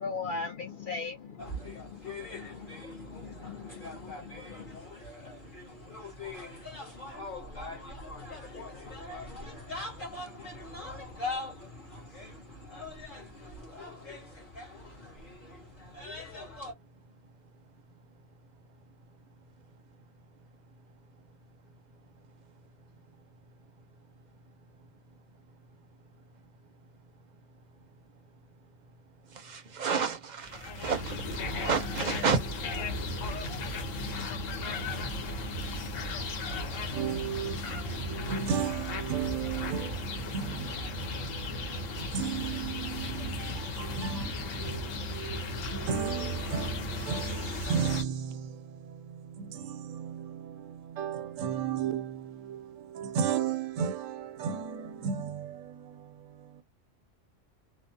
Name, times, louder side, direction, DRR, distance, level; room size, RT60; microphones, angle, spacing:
voice 1, 0.0-4.8, left 4 dB, 65° left, 0.5 m, -40 dB
sound 1, 1.4-16.7, left 2 dB, 45° left, 1.4 m, -42 dB
voice 2, 29.3-31.2 31.5-32.4, right 5 dB, 45° right, 0.6 m, -30 dB
sound 2, 30.4-48.0, left 2 dB, 80° left, 1.2 m, -35 dB
voice 3, 36.9-56.6, right 7 dB, 90° right, 1.0 m, -35 dB
3.1 x 2.1 x 2.6 m
omnidirectional pair, 1.3 m